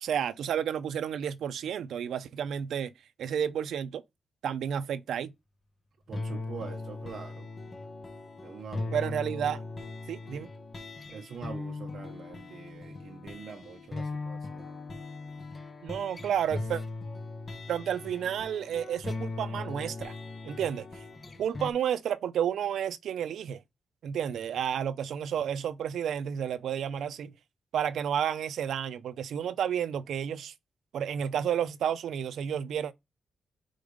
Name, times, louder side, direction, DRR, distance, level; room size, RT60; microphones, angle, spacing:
voice 1, 0.0-2.9 3.2-4.0 4.4-5.3 8.9-9.6 10.1-10.5 15.8-16.8 17.7-20.1 20.4-21.0 21.4-23.6 24.0-27.3 27.7-30.5 30.9-32.9, right 9 dB, 90° right, 0.5 m, -31 dB
sound 1, 6.1-21.7, left 3 dB, 30° left, 1.0 m, -39 dB
voice 2, 6.1-7.5 8.4-9.0 11.1-14.8, right 5 dB, 60° right, 0.8 m, -44 dB
5.2 x 3.9 x 5.0 m
wide cardioid pair, 145°, 0 cm